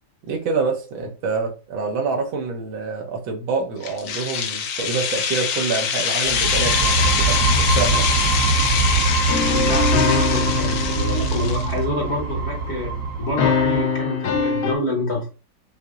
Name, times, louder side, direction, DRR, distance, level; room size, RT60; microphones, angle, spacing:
voice 1, 0.3-8.1, right 4 dB, 80° right, 2 dB, 1.8 m, -26 dB
sound 1, 3.8-11.7, left 7 dB, 75° left, 0.7 m, -24 dB
sound 2, 6.3-13.9, right 3 dB, 65° right, 1.1 m, -23 dB
sound 3, 9.3-12.5 13.4-14.7, left 5 dB, 90° left, 1.6 m, -23 dB
voice 2, 9.4-15.3, left 1 dB, 45° left, 0 dB, 1.0 m, -27 dB
6.2 x 2.8 x 2.4 m, 0.34 s
omnidirectional pair, 2.1 m